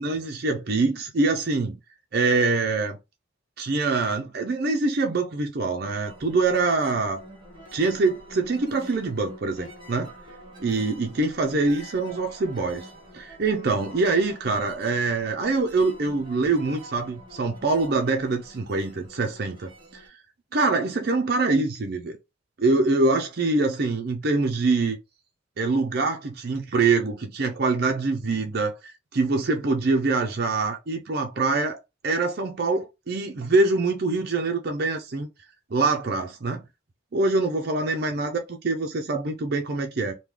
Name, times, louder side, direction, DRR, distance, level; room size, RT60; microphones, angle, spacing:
voice 1, 0.0-1.7 2.1-3.0 3.6-7.2 7.7-10.1 10.6-12.9 13.1-20.0 20.5-22.2 22.6-25.0 25.6-35.3 35.7-36.6 37.1-40.1, right 3 dB, 50° right, 0.5 m, -24 dB
sound 1, 6.0-20.1, equal, 25° right, 1.0 m, -46 dB
3.6 x 2.2 x 3.1 m
head